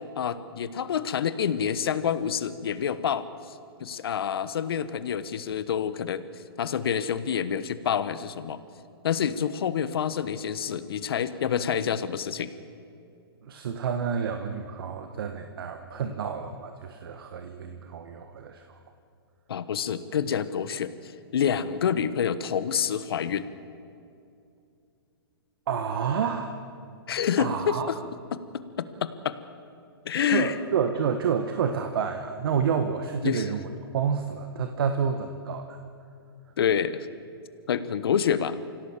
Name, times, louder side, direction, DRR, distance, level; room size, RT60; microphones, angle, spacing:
voice 1, 0.2-6.2 6.6-8.6 9.0-12.5 19.5-23.4 27.1-27.9 29.0-29.4 30.0-30.5 33.2-33.4 36.6-37.1 37.7-38.6, left 8 dB, 70° left, 13 dB, 1.2 m, -27 dB
voice 2, 13.4-18.8 25.7-26.5 27.4-27.9 30.3-33.7 33.9-35.8, right 7 dB, 65° right, 6 dB, 1.5 m, -29 dB
25.5 x 16.5 x 7.5 m, 2.6 s
hypercardioid pair, 130°, 13 cm